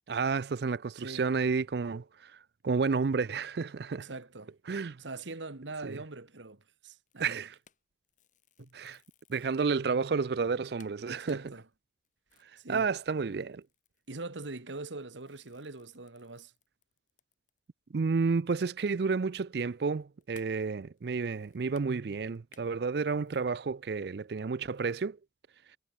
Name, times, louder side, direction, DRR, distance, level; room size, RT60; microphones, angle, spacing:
voice 1, 0.1-2.3 2.6-4.1 4.7-5.0 5.8-6.0 7.2-7.5 8.7-9.0 9.3-11.4 12.7-13.6 17.9-25.2, right 4 dB, 60° right, 0.4 m, -31 dB
voice 2, 1.0-1.3 3.9-4.5 5.0-7.4 8.6-8.9 11.1-11.7 12.6-12.9 14.1-16.5, right 3 dB, 80° right, 1.7 m, -43 dB
sound 1, 7.1-9.6 10.1-10.2 10.5-10.6 10.8-17.7 18.0-18.1 18.4-23.7 24.2-25.0, left 6 dB, 45° left, 3.7 m, -65 dB
head